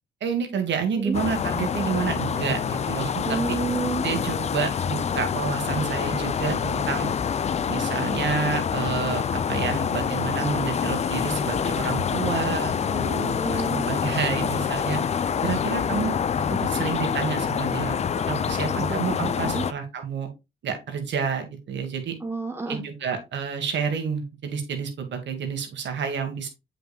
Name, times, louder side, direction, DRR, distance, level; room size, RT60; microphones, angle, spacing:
voice 1, 0.2-3.6 4.0-7.1 7.7-12.7 13.5-15.0 15.4-16.1 16.5-18.0 18.3-20.3 20.6-22.1 22.7-26.5, right 6 dB, 65° right, 1.5 m, -29 dB
sound 1, 1.1-19.7, left 7 dB, 35° left, 0.4 m, -26 dB
voice 2, 3.3-4.0 12.8-13.9 18.8-19.6 22.2-22.8, right 3 dB, 10° right, 1.1 m, -30 dB
7.8 x 5.2 x 2.3 m
cardioid pair, 90°, 20 cm